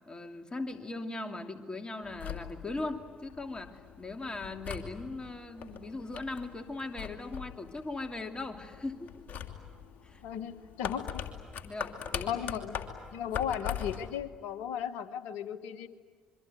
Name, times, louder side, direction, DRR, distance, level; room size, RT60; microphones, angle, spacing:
voice 1, 0.1-9.1 10.0-10.2 11.6-12.4, left 2 dB, 25° left, 6 dB, 2.8 m, -39 dB
sound 1, 2.0-14.2, left 8 dB, 55° left, 2.8 m, -42 dB
voice 2, 10.2-11.2 12.3-12.8 13.1-15.9, left 9 dB, 75° left, 13 dB, 1.2 m, -35 dB
26.5 x 23.5 x 9.3 m, 1.5 s
hypercardioid pair, 45°, 4 cm